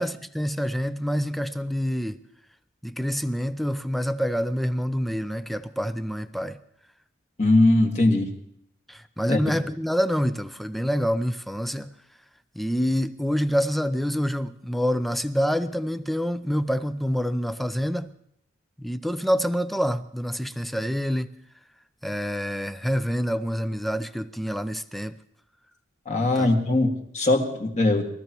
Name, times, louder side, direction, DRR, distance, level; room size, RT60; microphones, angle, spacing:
voice 1, 0.0-2.2 2.8-6.6 8.9-11.9 12.5-18.1 18.8-21.4 22.0-25.2 26.2-26.7, equal, ahead, 11 dB, 0.5 m, -27 dB
voice 2, 7.4-8.3 9.3-9.6 26.1-28.1, left 2 dB, 35° left, 1 dB, 1.9 m, -21 dB
23.0 x 14.0 x 3.0 m, 0.72 s
head